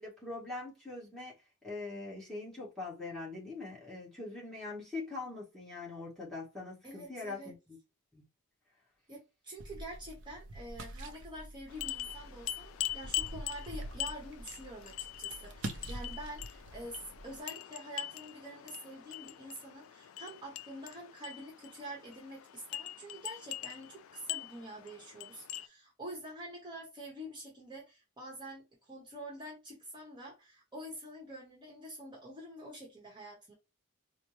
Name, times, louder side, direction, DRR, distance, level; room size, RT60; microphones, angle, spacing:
voice 1, 0.0-1.3 1.6-7.8 8.1-8.2, left 3 dB, ahead, 1.3 m, -42 dB
voice 2, 6.8-7.5 9.1-33.5, right 1 dB, 20° right, 1.0 m, -47 dB
sound 1, 9.6-17.4, right 1 dB, 55° right, 0.5 m, -46 dB
sound 2, 11.7-25.7, left 13 dB, 65° left, 0.3 m, -43 dB
4.2 x 2.0 x 3.1 m
head